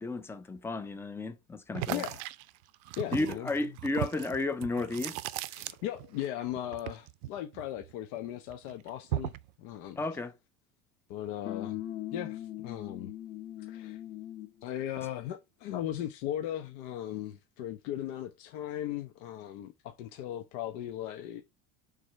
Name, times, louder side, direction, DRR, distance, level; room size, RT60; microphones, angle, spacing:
voice 1, 0.0-2.0 3.1-5.2 10.0-10.3, left 2 dB, 5° left, 0.3 m, -33 dB
sound 1, 1.7-6.3 6.5-8.2 8.5-9.5, right 16 dB, 80° right, 0.6 m, -37 dB
voice 2, 1.9-2.2 3.0-3.5 5.5-10.0 11.1-11.8 12.1-13.1 13.6-14.0 14.6-21.4, left 12 dB, 85° left, 1.0 m, -38 dB
sound 2, 11.4-14.6, left 13 dB, 35° left, 0.8 m, -40 dB
4.8 x 3.9 x 5.5 m
cardioid pair, 150°, 41 cm